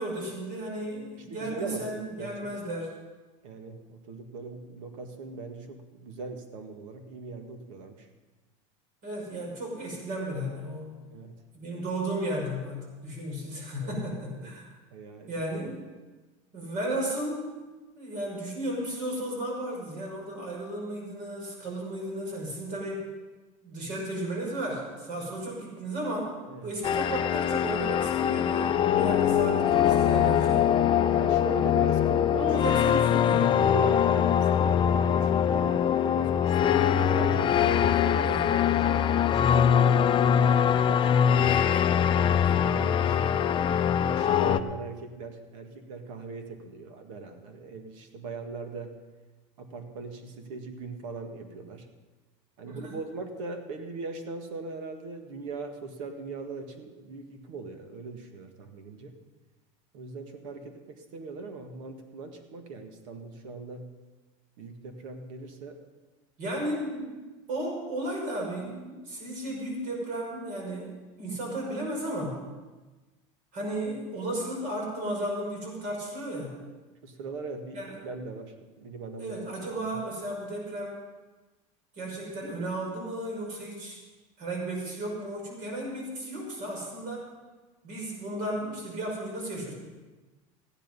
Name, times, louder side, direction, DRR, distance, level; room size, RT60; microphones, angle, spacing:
voice 1, 0.0-2.9 9.0-10.9 11.5-14.7 15.3-15.8 16.5-17.4 17.9-23.1 23.6-26.4 26.6-30.7 32.4-33.5 38.2-38.5 52.6-53.0 66.4-67.2 67.5-72.4 73.5-76.5 77.7-78.0 79.2-81.0 82.0-84.0 84.4-87.3 87.8-89.7, right 1 dB, 55° right, 0 dB, 5.9 m, -34 dB
voice 2, 1.3-2.5 3.4-8.1 11.1-11.3 13.8-14.5 14.9-15.3 26.5-26.7 31.1-32.6 33.4-40.1 40.8-43.4 44.0-48.9 49.6-51.9 52.6-59.2 59.9-63.9 64.6-65.8 77.0-79.4 79.8-80.0, right 3 dB, 80° right, 6 dB, 1.8 m, -40 dB
sound 1, 26.8-44.6, left 9 dB, 30° left, 0.5 m, -23 dB
15.0 x 10.5 x 5.4 m, 1.2 s
supercardioid pair, 125°, 16 cm